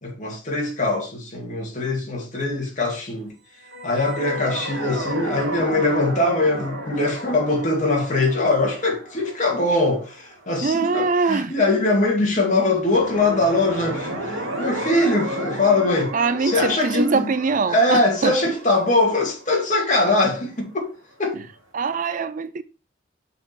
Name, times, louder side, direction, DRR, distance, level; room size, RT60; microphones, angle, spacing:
voice 1, 0.0-3.3 3.8-16.1 16.4-17.3 17.7-20.9 21.2-21.4, left 2 dB, 40° left, 2.1 m, -22 dB
sound 1, 3.6-10.8 12.7-20.5, right 1 dB, 90° right, 2.2 m, -33 dB
voice 2, 10.6-11.5 16.1-18.4 21.3-21.4 21.7-22.6, right 4 dB, 40° right, 0.4 m, -23 dB
6.5 x 4.2 x 4.5 m
head